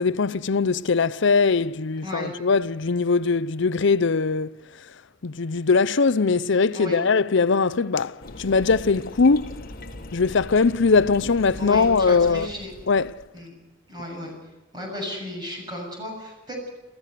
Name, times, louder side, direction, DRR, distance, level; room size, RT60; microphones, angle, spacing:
voice 1, 0.0-4.5 5.2-9.6 10.1-12.5 12.9-13.2, left 4 dB, 65° left, 0.6 m, -21 dB
sound 1, 8.2-13.3, left 1 dB, 50° left, 1.6 m, -40 dB
voice 2, 11.6-12.7 13.3-13.5 13.9-14.3 14.7-16.7, left 1 dB, 20° right, 7.1 m, -34 dB
29.0 x 15.0 x 6.8 m
head